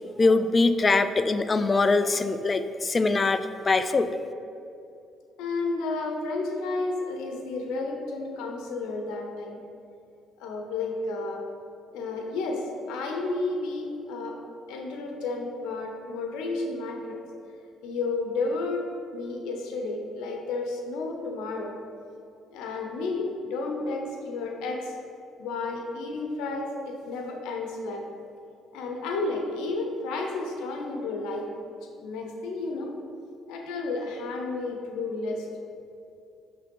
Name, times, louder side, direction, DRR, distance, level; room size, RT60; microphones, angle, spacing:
voice 1, 0.2-4.1, left 3 dB, 25° left, 11 dB, 0.3 m, -23 dB
voice 2, 5.4-9.6 10.4-11.5 11.9-14.4 14.7-17.2 17.8-21.7 22.5-25.0 25.4-28.1 28.7-31.5 32.0-32.9 33.5-35.5, left 3 dB, 90° left, 2 dB, 0.8 m, -32 dB
6.6 x 3.4 x 5.2 m, 2.6 s
cardioid pair, 105°, 0 cm